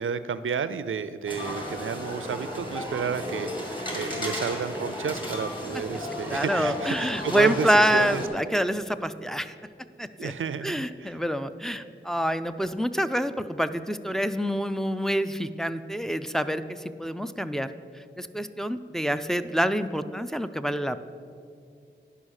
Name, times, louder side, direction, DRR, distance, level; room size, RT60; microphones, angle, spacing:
voice 1, 0.0-8.2 10.2-11.2, right 6 dB, 80° right, 13 dB, 0.4 m, -31 dB
sound 1, 1.3-8.3, left 1 dB, 25° left, 2.0 m, -34 dB
voice 2, 6.3-9.5 10.0-10.3 10.6-17.7 18.2-21.0, equal, ahead, 9 dB, 0.3 m, -27 dB
10.0 x 5.6 x 6.3 m, 2.4 s
wide cardioid pair, 85°, 20 cm